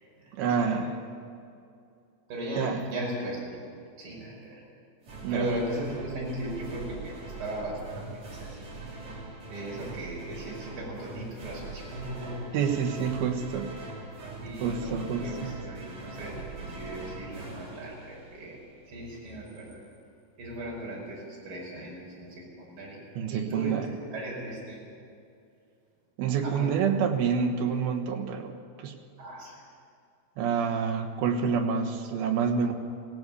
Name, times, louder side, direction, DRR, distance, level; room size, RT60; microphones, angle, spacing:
voice 1, 0.3-1.0 2.6-2.8 5.2-5.5 12.5-13.7 14.6-15.5 23.2-23.9 26.2-28.5 28.8-28.9 30.4-32.7, right 6 dB, 90° right, 4 dB, 3.4 m, -27 dB
voice 2, 2.3-3.6 4.0-4.6 5.3-8.1 8.4-8.7 9.5-12.6 14.4-18.6 18.9-19.8 20.4-23.0 23.3-23.8 24.1-24.8 26.4-26.7 29.2-29.5, right 1 dB, 70° right, -3 dB, 6.9 m, -37 dB
sound 1, 5.0-18.7, right 3 dB, 50° right, 4.2 m, -42 dB
18.5 x 17.0 x 8.4 m, 2.5 s
omnidirectional pair, 4.3 m